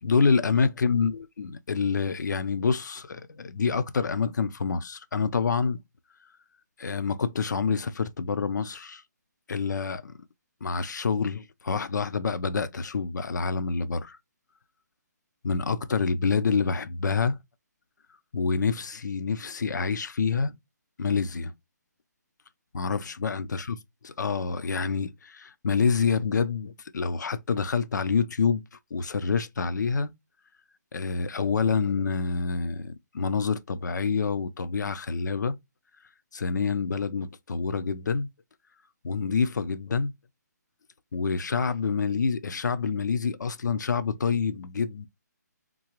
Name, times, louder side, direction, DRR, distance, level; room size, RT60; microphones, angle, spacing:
voice 1, 0.0-5.8 6.8-9.0 9.5-10.1 10.6-14.2 15.4-17.4 18.3-20.5 21.0-21.5 22.7-23.8 24.0-28.6 28.9-30.1 30.9-35.6 36.3-38.3 39.0-40.1 41.1-45.1, left 5 dB, 75° left, 0.6 m, -27 dB
3.7 x 2.9 x 3.0 m
hypercardioid pair, 155°, 10 cm